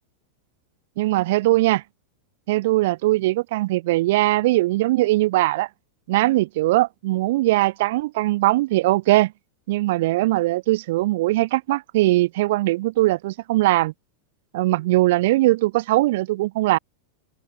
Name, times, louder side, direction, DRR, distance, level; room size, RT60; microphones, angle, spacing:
voice 1, 1.0-1.8 2.5-5.7 6.1-9.3 9.7-13.9 14.5-16.8, right 18 dB, 50° right, 1.6 m, -20 dB
figure-of-eight pair, 90°, 0 cm